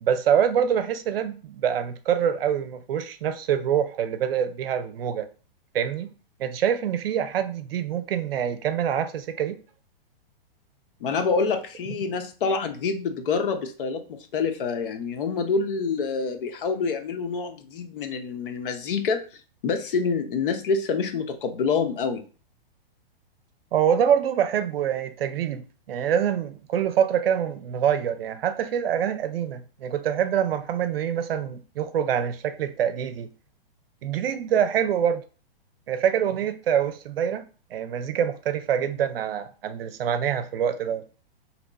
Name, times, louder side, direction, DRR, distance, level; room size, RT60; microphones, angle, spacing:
voice 1, 0.0-5.3 5.7-6.1 6.4-9.6 23.7-25.6 25.9-33.3 34.0-35.2 35.9-37.4 37.7-41.0, right 9 dB, 75° right, 0.5 m, -25 dB
voice 2, 11.0-19.2 19.6-22.2, left 5 dB, 65° left, 0.7 m, -27 dB
2.9 x 2.2 x 3.9 m
hypercardioid pair, 145°, 29 cm